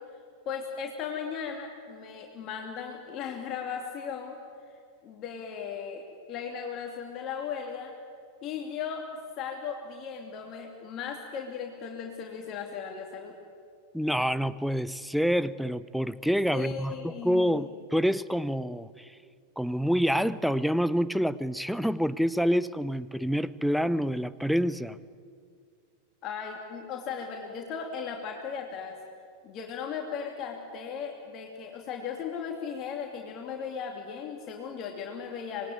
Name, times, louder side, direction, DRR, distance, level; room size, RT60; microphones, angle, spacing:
voice 1, 0.4-4.3 5.0-7.9 8.4-9.0 9.4-13.3 16.5-17.7 26.2-28.9 29.4-35.7, left 6 dB, 35° left, 1 dB, 2.8 m, -37 dB
voice 2, 13.9-19.1 19.6-25.0, equal, ahead, 17 dB, 0.7 m, -27 dB
26.0 x 20.0 x 9.4 m, 2.2 s
figure-of-eight pair, 90°, 0 cm